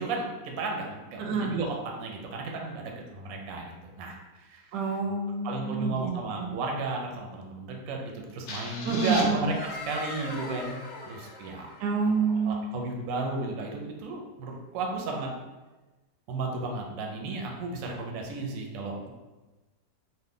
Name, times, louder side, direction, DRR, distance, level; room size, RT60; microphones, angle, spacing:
voice 1, 0.0-4.6 5.4-10.8 11.1-11.7 12.4-15.3 16.3-19.1, right 3 dB, 70° right, 0 dB, 0.9 m, -33 dB
voice 2, 1.2-1.5 4.7-6.1 6.4-6.5 8.8-9.5 11.8-12.7, right 4 dB, 90° right, 1 dB, 1.2 m, -28 dB
sound 1, 8.5-12.2, left 2 dB, 75° left, 0.6 m, -37 dB
3.1 x 2.1 x 3.6 m, 1.2 s
omnidirectional pair, 1.7 m